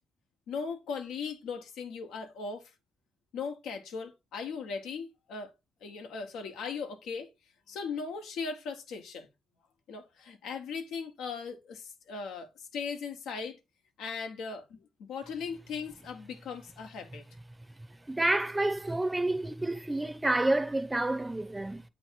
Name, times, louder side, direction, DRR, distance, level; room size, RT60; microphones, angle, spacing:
voice 1, 0.5-2.7 3.3-5.5 5.8-7.3 7.7-9.3 9.9-13.6 14.0-17.3, left 5 dB, 85° left, 1.0 m, -38 dB
voice 2, 18.1-21.8, right 2 dB, 15° right, 0.6 m, -29 dB
8.1 x 3.1 x 4.5 m
cardioid pair, 90°, 0 cm